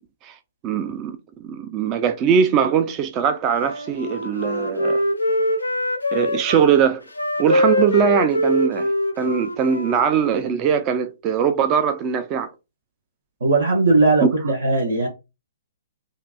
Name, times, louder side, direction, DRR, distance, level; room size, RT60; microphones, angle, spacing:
voice 1, 0.6-5.0 6.1-7.0 7.4-8.9 9.2-12.5 14.2-14.3, right 7 dB, 30° right, 0.4 m, -21 dB
Wind instrument woodwind instrument, 3.5-6.7 7.1-10.6, left 1 dB, 90° left, 0.5 m, -23 dB
voice 2, 13.4-15.1, right 3 dB, 70° right, 0.8 m, -18 dB
2.8 x 2.5 x 2.2 m
figure-of-eight pair, 120°, 0 cm